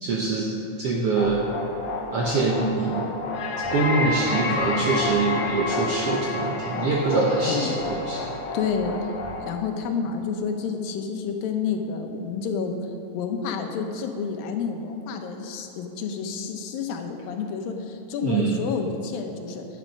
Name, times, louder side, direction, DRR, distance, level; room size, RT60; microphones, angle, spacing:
voice 1, 0.0-1.4 2.1-3.1 3.6-8.3 18.2-18.6, right 3 dB, 75° right, -2 dB, 1.4 m, -24 dB
sound 1, 1.1-9.6, left 3 dB, 70° left, 1.4 m, -30 dB
voice 2, 8.5-9.1 9.4-12.8 13.1-19.7, left 6 dB, 90° left, 5 dB, 2.7 m, -29 dB
11.0 x 9.4 x 5.3 m, 2.9 s
omnidirectional pair, 4.0 m